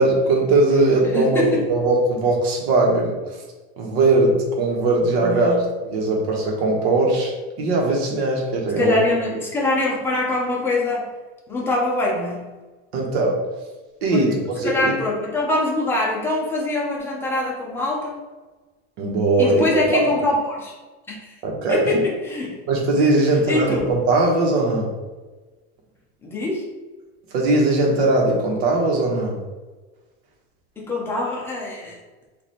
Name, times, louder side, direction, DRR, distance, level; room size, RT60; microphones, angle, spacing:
voice 1, 0.0-1.4 1.7-3.2 3.8-5.5 5.9-9.0 12.9-13.4 14.0-14.9 19.0-20.0 21.4-22.0 22.7-24.9 27.3-29.4, right 2 dB, 70° right, -1 dB, 1.2 m, -20 dB
voice 2, 1.1-1.6 5.2-5.7 8.8-11.1 11.5-12.5 14.1-14.3 14.6-18.2 19.4-20.7 21.1-21.4 21.7-22.6 23.3-23.9 26.2-26.6 30.8-32.0, left 2 dB, 5° left, -3 dB, 0.5 m, -24 dB
3.2 x 2.6 x 4.2 m, 1.2 s
supercardioid pair, 165°, 33 cm